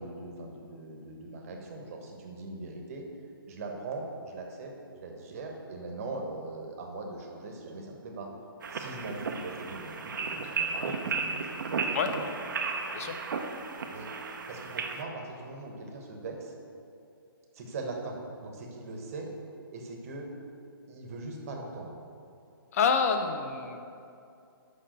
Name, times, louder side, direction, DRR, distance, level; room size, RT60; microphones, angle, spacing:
voice 1, 0.0-3.0 3.5-8.3 8.7-12.3 13.9-14.1 14.5-16.5 17.5-18.2 18.4-19.3 19.7-20.3 20.9-21.9, right 2 dB, 35° right, 1 dB, 1.2 m, -40 dB
sound 1, 8.6-15.0, right 4 dB, 55° right, 0.7 m, -34 dB
voice 2, 22.7-23.8, left 6 dB, 40° left, 7 dB, 0.7 m, -27 dB
6.3 x 5.6 x 6.7 m, 2.6 s
hypercardioid pair, 145°, 13 cm